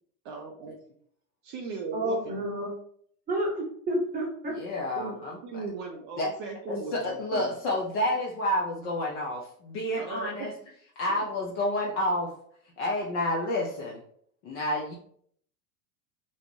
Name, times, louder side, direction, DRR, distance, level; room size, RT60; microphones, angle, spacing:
voice 1, 0.3-0.7 1.4-2.5 4.9-5.2 5.4-7.5 9.9-10.5, right 5 dB, 40° right, 0 dB, 0.4 m, -38 dB
voice 2, 1.9-2.7 3.3-4.6, right 1 dB, 20° right, -2 dB, 0.9 m, -30 dB
voice 3, 4.5-5.4 6.2-6.3 6.7-10.5 11.0-12.3 12.8-14.0 14.4-14.9, left 1 dB, 30° left, -3 dB, 0.3 m, -29 dB
2.6 x 2.0 x 3.0 m, 0.63 s
hypercardioid pair, 110°, 48 cm